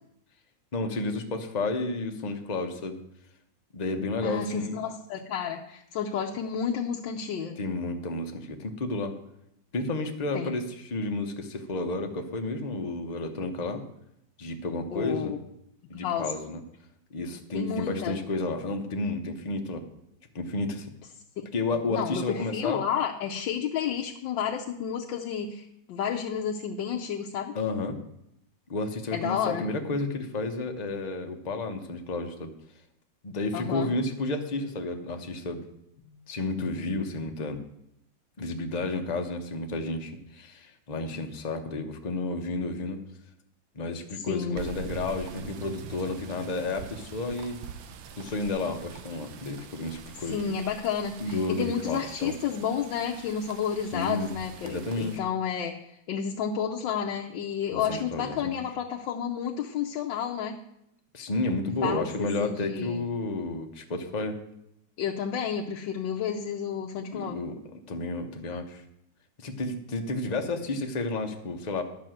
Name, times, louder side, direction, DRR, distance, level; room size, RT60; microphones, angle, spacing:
voice 1, 0.7-3.0 3.7-4.8 7.6-9.2 9.7-13.8 14.4-15.4 15.9-16.6 17.1-19.8 20.3-20.9 21.5-22.8 27.5-28.0 28.7-32.5 33.2-35.6 36.3-37.6 38.4-43.0 43.7-47.6 48.2-50.4 51.2-52.3 53.9-54.3 54.6-55.2 57.7-58.6 61.1-64.4 67.1-68.8 69.4-71.8, left 2 dB, 30° left, 5 dB, 0.8 m, -31 dB
voice 2, 4.2-7.6 10.3-10.5 14.9-15.4 15.9-16.3 17.5-18.2 21.7-27.6 29.1-29.7 33.5-33.9 44.2-44.7 50.2-60.5 61.8-63.0 65.0-67.4, left 8 dB, 80° left, 0 dB, 1.5 m, -31 dB
sound 1, 44.6-55.2, right 6 dB, 80° right, 1.5 m, -44 dB
11.0 x 5.7 x 7.7 m, 0.77 s
omnidirectional pair, 2.0 m